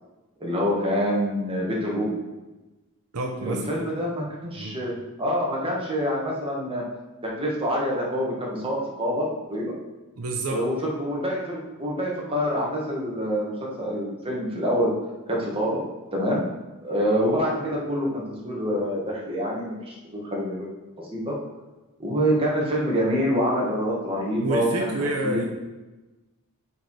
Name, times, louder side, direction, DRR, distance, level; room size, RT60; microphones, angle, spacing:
voice 1, 0.4-2.1 3.4-6.9 7.2-9.7 10.5-14.9 15.3-15.8 16.1-16.4 16.8-20.7 21.1-21.3 22.0-24.9 25.2-25.4, equal, 25° right, -4 dB, 1.8 m, -26 dB
voice 2, 3.1-3.7 4.6-4.8 10.2-10.6 24.4-25.4, right 2 dB, 80° right, 1 dB, 0.9 m, -28 dB
7.0 x 4.7 x 4.8 m, 1.1 s
head